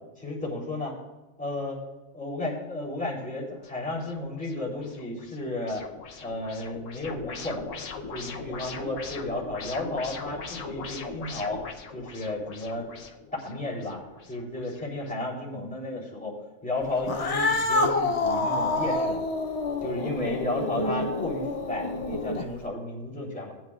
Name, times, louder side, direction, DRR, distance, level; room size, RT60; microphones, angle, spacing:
voice 1, 0.2-0.9 1.4-1.8 2.1-5.8 6.2-7.6 8.1-11.6 11.9-12.9 13.4-14.0 14.3-19.2 19.8-23.5, left 2 dB, 5° left, -5 dB, 3.5 m, -33 dB
sound 1, 3.6-15.1, left 4 dB, 85° left, 1.3 m, -41 dB
Cat, 17.0-22.6, left 2 dB, 40° left, 0.6 m, -27 dB
18.5 x 9.4 x 2.5 m, 1.1 s
omnidirectional pair, 1.3 m